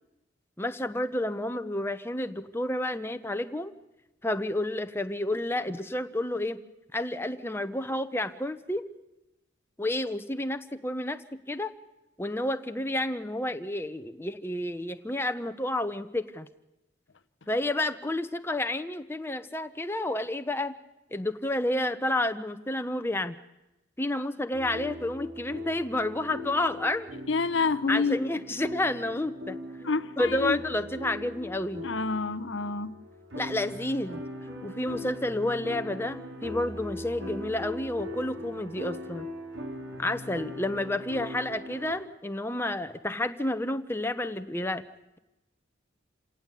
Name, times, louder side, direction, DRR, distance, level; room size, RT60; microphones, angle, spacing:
voice 1, 0.6-3.7 4.2-6.6 6.9-8.9 9.8-11.2 11.5-11.7 12.2-16.5 17.5-20.7 21.1-23.4 24.0-27.1 27.9-29.6 30.2-31.9 33.4-34.2 34.6-39.3 40.0-44.8, left 1 dB, 10° left, 8 dB, 1.0 m, -30 dB
sound 1, 24.5-41.9, left 1 dB, 75° right, 4.9 m, -40 dB
voice 2, 27.3-28.2 29.8-30.6 31.8-32.9, left 4 dB, 75° left, 11 dB, 0.8 m, -28 dB
27.5 x 18.0 x 8.4 m, 0.96 s
head